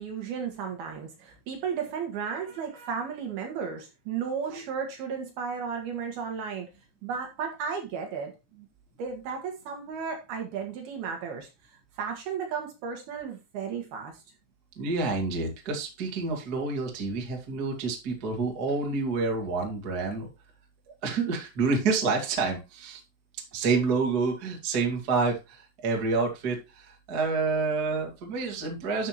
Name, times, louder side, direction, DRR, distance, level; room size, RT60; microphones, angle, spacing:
voice 1, 0.0-6.7 7.0-8.7 9.0-11.5 12.0-14.1, right 6 dB, 65° right, 3.1 m, -34 dB
voice 2, 14.8-20.3 21.0-23.0 23.5-29.1, right 4 dB, 35° right, 1.7 m, -28 dB
12.5 x 6.5 x 3.0 m
omnidirectional pair, 5.4 m